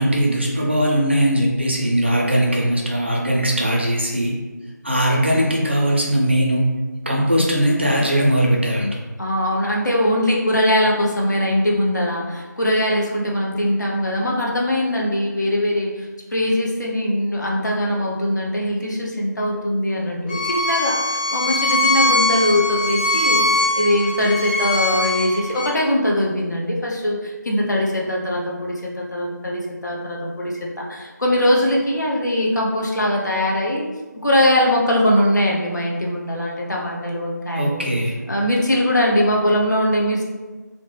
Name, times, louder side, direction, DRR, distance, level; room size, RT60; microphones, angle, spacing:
voice 1, 0.0-4.4 4.8-6.7 7.1-9.0 37.5-38.1, equal, 35° right, -2 dB, 0.4 m, -19 dB
voice 2, 9.2-33.9 34.2-37.9 38.3-40.2, left 1 dB, 70° left, -2 dB, 0.6 m, -21 dB
Bowed string instrument, 20.3-25.7, left 2 dB, 25° left, 0.8 m, -21 dB
2.1 x 2.0 x 3.0 m, 1.3 s
figure-of-eight pair, 170°, 10 cm